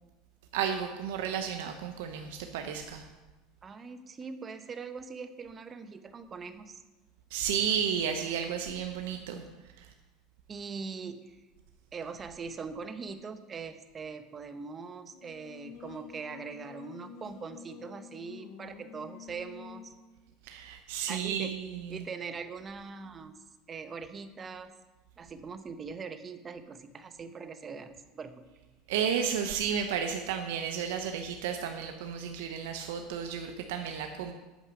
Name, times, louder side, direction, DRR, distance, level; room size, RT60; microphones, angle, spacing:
voice 1, 0.5-3.0 7.3-9.4 9.8-9.9 20.4-22.0 28.9-34.3, right 7 dB, 85° right, 5 dB, 0.8 m, -32 dB
voice 2, 3.6-6.8 10.5-11.4 11.9-19.9 21.1-21.5 21.9-23.3 23.7-24.7 25.2-28.4, right 5 dB, 25° right, 10 dB, 0.8 m, -42 dB
Singing, 15.1-20.0, left 8 dB, 60° left, 0.8 m, -49 dB
9.0 x 6.2 x 6.9 m, 1.1 s
supercardioid pair, 135°, 0 cm